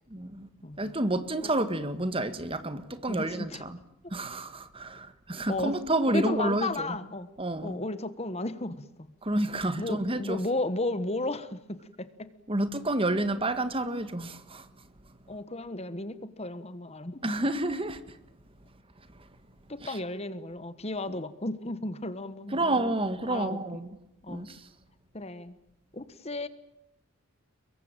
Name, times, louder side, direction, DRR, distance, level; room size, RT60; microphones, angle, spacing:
voice 1, 0.1-0.5 0.8-3.8 4.1-6.9 7.4-7.8 9.2-10.4 12.5-14.7 17.2-18.2 19.8-20.0 22.5-23.9 24.3-24.6, right 1 dB, 25° right, 1.7 m, -29 dB
voice 2, 3.1-3.6 5.5-5.8 6.1-7.3 7.6-9.1 9.8-12.3 15.3-17.2 19.7-22.8 23.2-23.9 24.2-24.5 25.1-25.6 25.9-26.5, left 2 dB, 30° left, 1.3 m, -34 dB
24.5 x 22.5 x 9.0 m
head